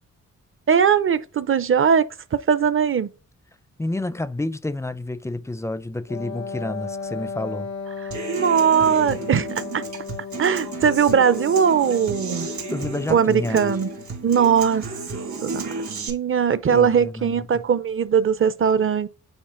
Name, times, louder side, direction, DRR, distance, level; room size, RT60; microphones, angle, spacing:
voice 1, 0.7-3.1 8.3-9.8 10.4-12.5 13.1-13.9 14.2-14.9 15.4-15.7 16.1-19.1, right 7 dB, 45° right, 0.6 m, -20 dB
voice 2, 3.8-7.7 12.7-13.8 16.7-17.5, left 2 dB, 10° left, 0.4 m, -29 dB
Wind instrument woodwind instrument, 6.1-14.2, left 5 dB, 75° left, 0.8 m, -35 dB
Human voice / Acoustic guitar, 8.1-16.1, right 4 dB, 70° right, 2.2 m, -33 dB
8.8 x 4.1 x 2.6 m
wide cardioid pair, 105°, 30 cm